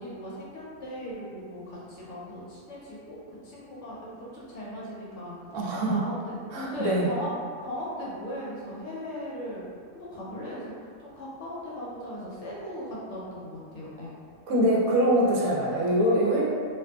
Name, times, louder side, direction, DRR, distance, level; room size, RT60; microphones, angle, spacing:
voice 1, 0.0-5.3 5.6-6.3 6.7-7.3 7.6-9.6 9.9-14.2, equal, 65° left, -6 dB, 0.8 m, -38 dB
voice 2, 5.5-6.0 6.5-7.1 14.5-16.5, right 1 dB, 80° right, -4 dB, 1.0 m, -23 dB
2.5 x 2.4 x 2.2 m, 2.1 s
omnidirectional pair, 1.5 m